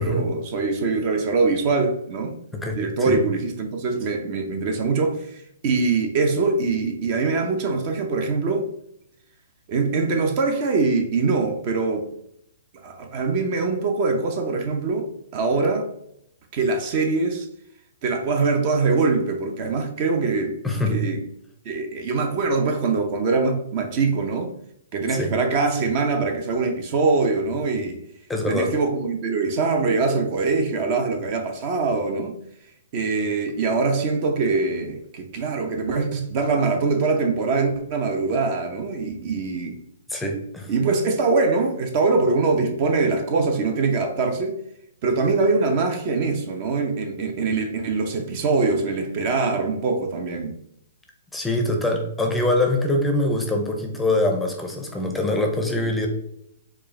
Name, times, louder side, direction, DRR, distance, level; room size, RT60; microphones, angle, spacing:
voice 1, 0.0-2.3 2.7-8.7 9.7-12.1 12.8-15.9 16.5-17.5 18.0-20.6 20.9-21.2 21.6-24.5 24.9-28.0 28.5-32.3 32.9-39.8 40.7-44.5 45.0-50.5, right 3 dB, 40° right, 4 dB, 0.7 m, -23 dB
voice 2, 20.6-21.0 25.1-25.3 28.3-28.7 40.1-40.7 51.3-56.1, left 1 dB, 5° left, 2 dB, 0.6 m, -23 dB
4.4 x 2.4 x 3.2 m, 0.75 s
figure-of-eight pair, 125°, 0 cm